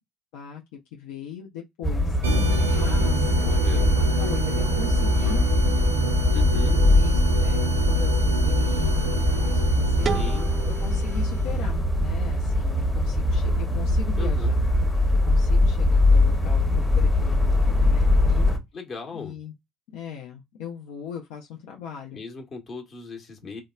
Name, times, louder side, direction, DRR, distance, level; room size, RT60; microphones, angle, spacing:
voice 1, 0.9-2.2 2.8-3.4 3.7-5.5 6.5-10.2 10.8-14.7 15.3-18.5 19.1-19.5 19.9-22.2, left 7 dB, 75° left, 0.5 m, -38 dB
sound 1, 1.8-18.6, left 2 dB, 15° left, 0.8 m, -22 dB
sound 2, 2.2-11.6, right 1 dB, 90° right, 0.6 m, -25 dB
voice 2, 3.4-3.9 6.3-6.8 10.1-10.5 14.2-14.5 18.7-19.4 22.1-23.6, left 4 dB, 45° left, 1.1 m, -37 dB
sound 3, 10.1-12.9, right 6 dB, 45° right, 0.3 m, -35 dB
2.9 x 2.1 x 2.3 m
hypercardioid pair, 55°, 0 cm